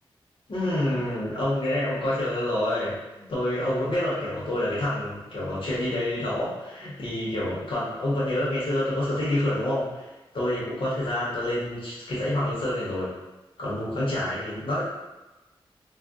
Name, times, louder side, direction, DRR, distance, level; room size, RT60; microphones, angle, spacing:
voice 1, 0.5-3.0 3.3-10.0 10.3-13.1 13.6-14.9, left 1 dB, 65° left, -7 dB, 1.0 m, -27 dB
2.4 x 2.1 x 2.5 m, 1.1 s
cardioid pair, 65°, 10 cm